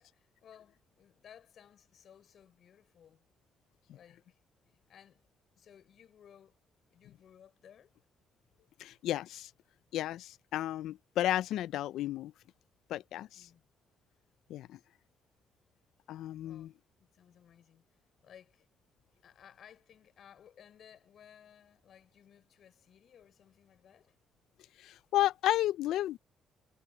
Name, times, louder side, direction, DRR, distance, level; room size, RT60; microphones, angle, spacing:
voice 1, 0.0-3.3 3.9-4.4 4.9-5.3 5.5-6.6 6.9-7.9 13.3-13.7 16.4-16.7 17.0-18.7 19.2-24.2, left 9 dB, 65° left, 5.0 m, -59 dB
voice 2, 8.8-9.5 9.9-12.3 12.9-13.5 14.5-14.8 16.1-16.7 24.8-26.2, left 13 dB, 85° left, 0.4 m, -33 dB
cardioid pair, 90°, 0 cm